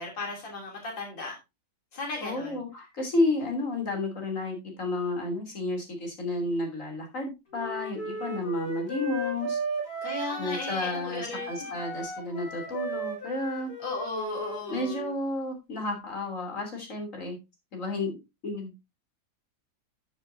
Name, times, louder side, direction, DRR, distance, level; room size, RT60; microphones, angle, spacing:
voice 1, 0.0-1.3 1.9-2.6 10.0-11.8 13.8-14.9, left 2 dB, 85° left, 3.8 m, -35 dB
voice 2, 2.2-9.6 10.4-13.7 14.7-17.4 17.7-18.2 18.4-18.8, left 2 dB, 45° left, 3.5 m, -31 dB
Wind instrument woodwind instrument, 7.5-11.1 11.3-15.2, right 2 dB, 60° left, 4.3 m, -35 dB
13.5 x 7.1 x 2.7 m
omnidirectional pair, 2.0 m